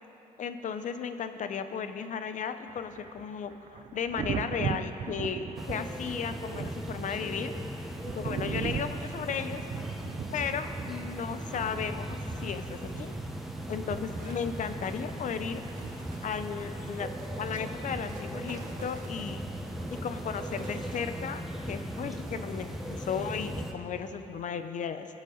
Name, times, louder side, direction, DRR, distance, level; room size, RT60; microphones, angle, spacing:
voice 1, 0.4-7.5 8.1-9.6 10.3-13.2 13.7-15.6 16.2-17.1 17.4-19.4 19.9-25.1, left 7 dB, 60° left, 9 dB, 0.8 m, -35 dB
Thunder, 2.7-16.3 18.0-18.2, right 8 dB, 50° right, 0.4 m, -40 dB
sound 1, 5.6-23.7, right 1 dB, ahead, 1.1 m, -38 dB
sound 2, 12.9-21.4, right 4 dB, 65° right, 1.2 m, -52 dB
21.0 x 7.3 x 4.0 m, 3.0 s
cardioid pair, 80°, 15 cm